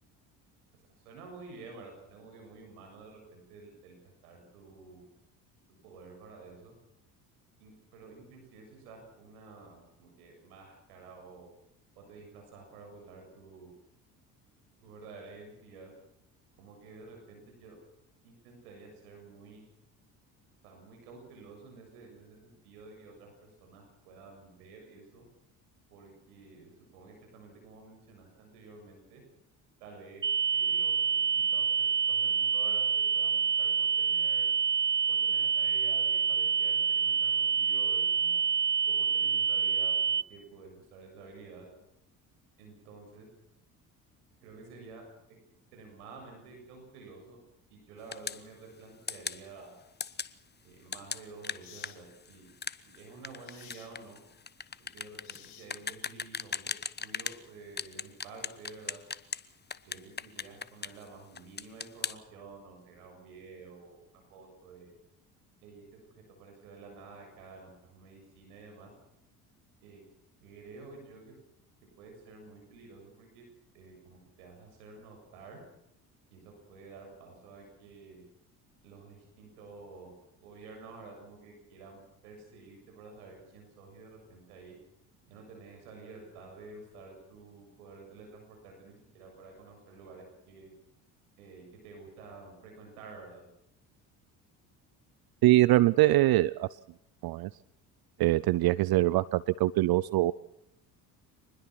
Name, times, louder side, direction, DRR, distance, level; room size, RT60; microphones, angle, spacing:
voice 1, 1.0-4.0 4.2-5.1 5.8-6.7 7.6-11.5 12.0-13.7 14.8-15.9 16.6-17.8 18.2-19.7 20.6-25.2 25.9-29.2 29.8-30.3 30.5-34.5 35.1-38.4 38.8-41.7 42.6-43.3 44.4-45.0 45.7-47.4 47.7-49.8 50.6-52.5 52.9-54.2 54.8-56.7 57.0-59.0 59.9-64.9 65.6-66.1 66.4-68.9 69.8-70.0 70.4-71.3 72.0-73.4 73.7-75.6 76.3-78.2 78.8-84.7 85.3-90.7 91.4-93.4, right 4 dB, 85° right, 2 dB, 7.4 m, -51 dB
sound 1, 30.2-40.2, right 6 dB, 25° right, 1.1 m, -27 dB
sound 2, 48.1-48.4 49.1-49.4 50.0-50.3 50.9-57.4 57.8-59.4 59.7-61.1 61.4-62.2, left 6 dB, 25° left, 1.1 m, -37 dB
sound 3, 50.7-50.9 51.6-52.0 53.4-53.9 55.2-56.0, left 12 dB, 85° left, 2.6 m, -53 dB
voice 2, 95.4-96.7 97.2-97.5 98.2-100.3, right 17 dB, 55° right, 20 dB, 0.7 m, -23 dB
25.5 x 20.5 x 6.1 m, 0.79 s
hypercardioid pair, 65°, 44 cm